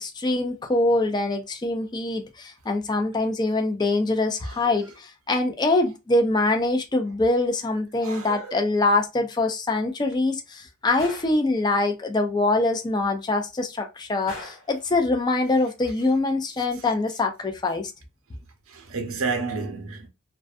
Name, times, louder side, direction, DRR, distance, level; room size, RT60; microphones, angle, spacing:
voice 1, 0.0-17.9, left 2 dB, 20° left, 0.3 m, -24 dB
voice 2, 4.4-4.7 8.0-8.6 18.7-20.1, right 4 dB, 75° right, 0.7 m, -31 dB
Gunshot gunfire, 11.0-11.4 14.3-14.7, left 2 dB, 75° left, 1.0 m, -39 dB
2.5 x 2.2 x 2.3 m
head